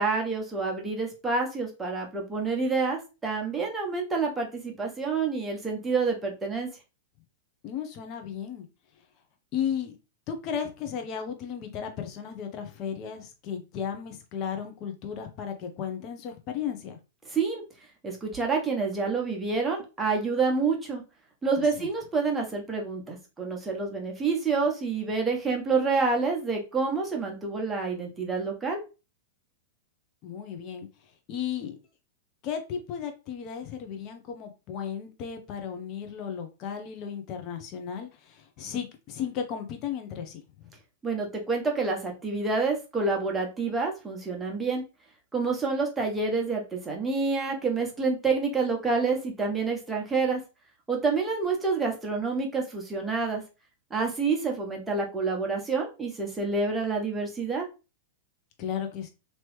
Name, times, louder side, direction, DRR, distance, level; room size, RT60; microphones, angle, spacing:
voice 1, 0.0-6.7 17.3-17.6 18.0-21.0 21.4-28.8 41.0-44.8 45.3-50.4 50.9-53.4 53.9-57.7, right 4 dB, 10° right, 1.0 m, -28 dB
voice 2, 7.6-8.7 9.5-10.0 10.3-17.0 21.8-21.9 30.2-30.9 31.3-31.7 32.4-40.7 58.6-59.1, left 8 dB, 40° left, 0.8 m, -35 dB
3.0 x 2.9 x 3.1 m
figure-of-eight pair, 100°, 0 cm